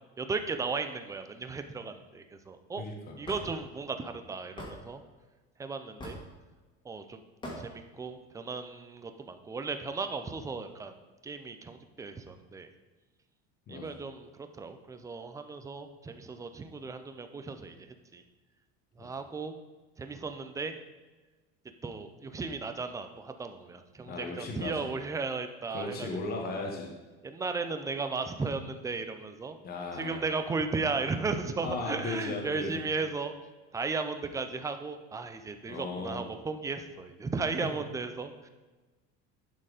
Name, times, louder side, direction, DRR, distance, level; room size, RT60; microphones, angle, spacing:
voice 1, 0.2-2.8 3.2-5.0 5.6-6.2 6.8-7.2 7.6-10.9 11.2-12.7 13.7-17.9 18.1-18.2 19.0-19.5 20.0-20.7 21.8-26.4 27.2-29.6 29.9-33.3 33.7-38.5, right 4 dB, 10° right, 7 dB, 0.4 m, -35 dB
voice 2, 2.8-3.1 13.7-13.9 19.0-19.1 24.1-24.9 25.7-26.9 29.6-30.2 31.6-32.8 35.7-36.3, left 3 dB, 30° left, 1 dB, 1.2 m, -36 dB
Hammer / Wood, 3.3-3.5 4.6-4.7 6.0-6.3 7.4-7.6, left 1 dB, 15° left, 1.8 m, -40 dB
11.0 x 4.5 x 4.9 m, 1.2 s
cardioid pair, 155°, 31 cm